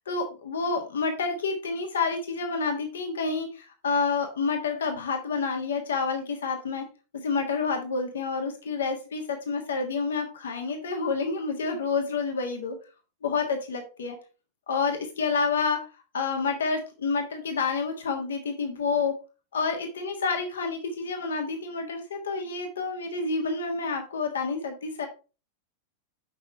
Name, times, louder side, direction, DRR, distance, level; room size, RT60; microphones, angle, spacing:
voice 1, 0.0-6.8 7.1-12.8 13.2-14.2 14.7-15.8 16.1-19.1 19.5-25.1, left 4 dB, 65° left, 4 dB, 1.4 m, -29 dB
7.5 x 5.5 x 4.3 m, 0.33 s
figure-of-eight pair, 90°, 0 cm